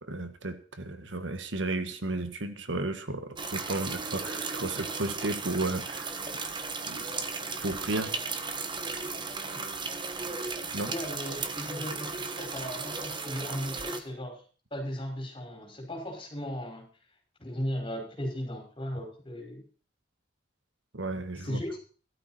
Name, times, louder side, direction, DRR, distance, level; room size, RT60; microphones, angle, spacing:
voice 1, 0.0-6.2 6.9-7.1 7.6-8.1 10.7-10.9 20.9-21.6, right 2 dB, 75° right, 9 dB, 1.5 m, -33 dB
sound 1, 3.4-14.0, right 4 dB, 25° right, 1.3 m, -35 dB
voice 2, 10.9-14.4 14.7-16.8 17.4-19.6 21.4-21.8, equal, 30° left, 0 dB, 5.5 m, -36 dB
15.5 x 13.0 x 4.4 m, 0.39 s
head